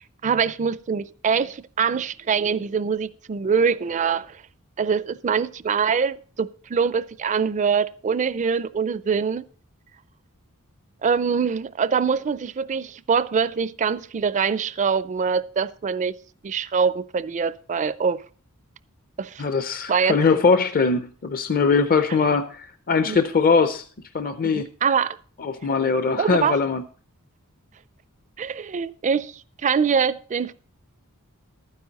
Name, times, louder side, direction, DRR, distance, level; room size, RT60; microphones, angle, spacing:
voice 1, 0.0-4.4 4.8-9.4 11.0-16.1 16.4-18.2 19.2-19.4 19.9-20.4 23.1-23.2 24.5-25.2 26.2-26.6 28.4-30.5, right 6 dB, 35° right, 0.4 m, -24 dB
voice 2, 19.4-23.9 24.1-24.7 25.4-26.8, left 4 dB, 40° left, 0.5 m, -21 dB
12.0 x 9.7 x 4.0 m
head